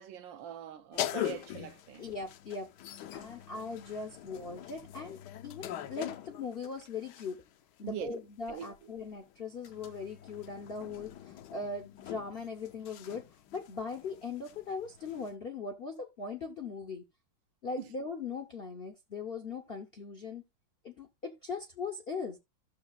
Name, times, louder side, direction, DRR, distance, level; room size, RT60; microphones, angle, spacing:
voice 1, 0.0-2.1 7.8-8.2 8.5-8.9 17.8-17.9, right 10 dB, 80° right, 1.5 m, -42 dB
sound 1, 0.9-7.5 8.5-15.3, left 12 dB, 70° left, 1.1 m, -43 dB
voice 2, 2.0-2.7 3.1-7.4 7.8-13.3 13.5-17.0 17.6-20.4 20.8-22.4, left 4 dB, 50° left, 0.7 m, -40 dB
15.5 x 6.5 x 2.3 m
omnidirectional pair, 2.0 m